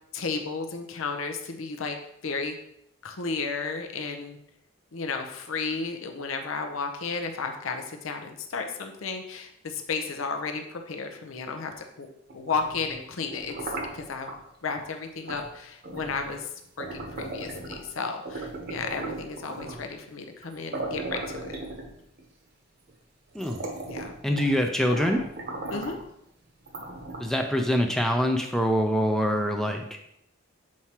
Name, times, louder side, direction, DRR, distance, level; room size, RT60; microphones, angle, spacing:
voice 1, 0.1-2.0 2.2-2.6 3.0-4.4 4.9-12.1 12.3-13.6 13.9-14.3 14.6-16.5 16.8-21.6 23.9-24.1 25.7-26.0, left 4 dB, 85° left, 5 dB, 0.7 m, -33 dB
sound 1, 12.3-14.4 15.3-15.5 15.8-17.9 18.3-19.9 20.4-20.5 20.7-22.2 22.9-23.0 23.3-24.6 24.9-26.1 26.7-27.5, right 2 dB, 50° right, 0.9 m, -37 dB
voice 2, 24.2-25.2 27.2-29.8, equal, ahead, 3 dB, 0.4 m, -24 dB
7.3 x 4.6 x 2.9 m, 0.77 s
head